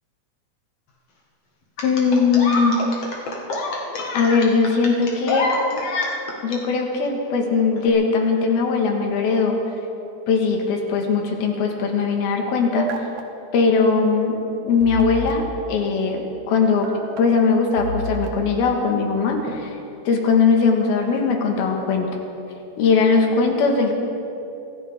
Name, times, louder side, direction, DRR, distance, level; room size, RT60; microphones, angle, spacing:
voice 1, 1.8-2.8 4.1-5.5 6.4-9.6 10.3-12.9 13.5-14.4 14.6-19.8 20.1-22.1 22.8-24.0, left 4 dB, 65° left, 2 dB, 3.3 m, -20 dB
sound 1, 1.8-6.6 7.8-7.9, left 2 dB, 50° left, 2.0 m, -26 dB
sound 2, 12.7-13.2 14.8-15.3 16.8-17.2 17.8-18.3, right 2 dB, 85° right, 1.5 m, -29 dB
26.0 x 15.0 x 3.6 m, 2.8 s
omnidirectional pair, 5.0 m